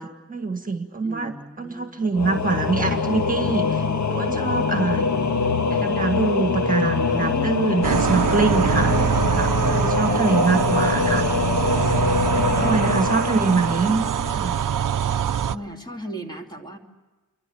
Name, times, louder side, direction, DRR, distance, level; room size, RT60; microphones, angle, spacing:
voice 1, 0.0-5.1 5.7-8.9 9.3-11.3 12.3-14.0 14.3-14.6, right 4 dB, 25° right, 6 dB, 1.7 m, -24 dB
voice 2, 1.0-2.0 7.0-7.7 8.6-9.2 9.6-10.4 12.5-13.2 15.5-16.8, equal, 15° left, 1 dB, 2.8 m, -36 dB
Singing / Musical instrument, 2.1-14.7, left 5 dB, 65° left, 1.5 m, -24 dB
sound 1, 7.8-15.6, right 9 dB, 90° right, 0.7 m, -23 dB
29.0 x 24.5 x 7.1 m, 1.2 s
wide cardioid pair, 170°, 31 cm